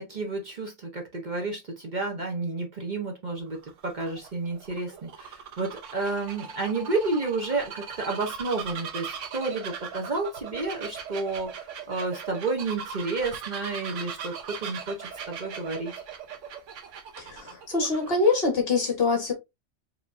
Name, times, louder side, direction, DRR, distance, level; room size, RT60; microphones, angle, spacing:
voice 1, 0.0-9.1 9.3-15.9, right 3 dB, 40° right, 1.0 m, -31 dB
Bird vocalization bird call bird song, 3.4-18.4, right 7 dB, 90° right, 1.1 m, -39 dB
voice 2, 17.2-19.3, left 3 dB, 55° left, 1.7 m, -24 dB
4.9 x 3.0 x 2.6 m
omnidirectional pair, 1.2 m